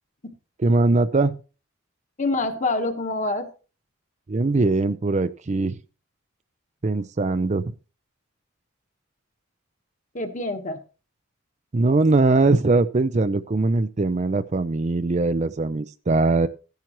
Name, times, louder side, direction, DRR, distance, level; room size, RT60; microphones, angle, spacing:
voice 1, 0.6-1.3 4.3-5.8 6.8-7.7 11.7-16.5, right 3 dB, 35° right, 13 dB, 0.5 m, -21 dB
voice 2, 2.2-3.5 10.1-10.8, left 2 dB, 40° left, 6 dB, 1.3 m, -26 dB
14.5 x 10.5 x 3.0 m, 0.34 s
head